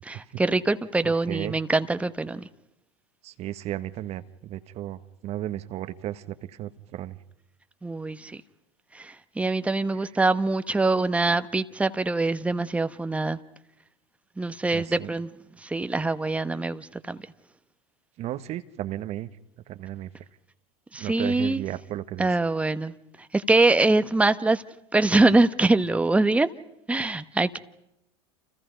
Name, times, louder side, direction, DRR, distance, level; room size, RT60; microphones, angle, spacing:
voice 1, 0.0-2.4 7.8-8.4 8.9-13.4 14.4-15.3 15.6-17.2 20.9-21.6 22.2-22.9 23.3-24.6 24.9-26.5 26.9-27.6, right 2 dB, 10° right, 1.2 m, -24 dB
voice 2, 1.0-1.6 3.2-6.2 6.6-7.2 14.7-15.1 18.2-19.3 19.7-20.1 21.0-22.4, right 13 dB, 45° right, 1.3 m, -34 dB
29.0 x 29.0 x 5.2 m
hypercardioid pair, 85°, 15 cm